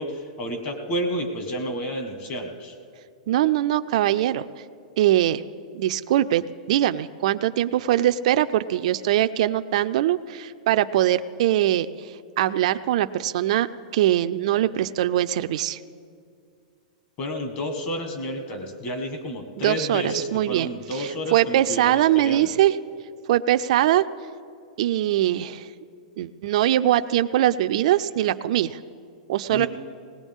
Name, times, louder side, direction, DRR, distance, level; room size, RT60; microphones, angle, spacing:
voice 1, 0.0-2.7 17.2-22.5 29.5-29.7, equal, 35° left, 5 dB, 1.6 m, -30 dB
voice 2, 3.3-4.4 5.0-5.4 5.7-13.7 13.9-15.8 19.6-22.8 23.3-24.0 24.8-25.7 26.2-28.8 29.3-29.7, right 13 dB, 55° right, 11 dB, 0.4 m, -22 dB
19.0 x 18.0 x 3.6 m, 2.2 s
supercardioid pair, 155°, 4 cm